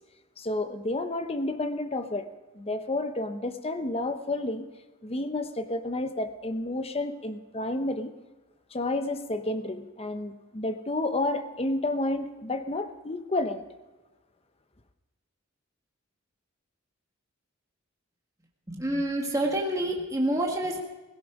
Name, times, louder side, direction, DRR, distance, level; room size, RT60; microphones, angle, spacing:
voice 1, 0.4-2.2 2.5-4.7 5.0-8.1 8.7-13.6, left 2 dB, 30° left, 8 dB, 1.0 m, -30 dB
voice 2, 18.7-20.8, right 1 dB, 15° right, 0 dB, 1.6 m, -27 dB
17.0 x 16.5 x 5.0 m, 1.2 s
head